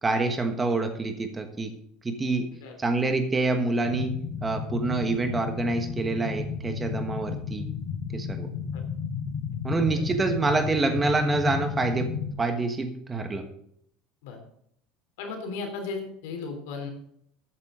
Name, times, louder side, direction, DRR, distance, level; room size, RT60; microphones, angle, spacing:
voice 1, 0.0-1.7 2.0-2.5 2.8-7.7 8.1-8.5 9.6-13.5, right 3 dB, 15° right, 7 dB, 1.3 m, -27 dB
sound 1, 3.8-12.3, left 7 dB, 35° left, 4.5 m, -33 dB
voice 2, 15.2-16.9, left 4 dB, 85° left, 4 dB, 3.3 m, -35 dB
14.0 x 9.1 x 3.8 m, 0.71 s
cardioid pair, 150°, 0 cm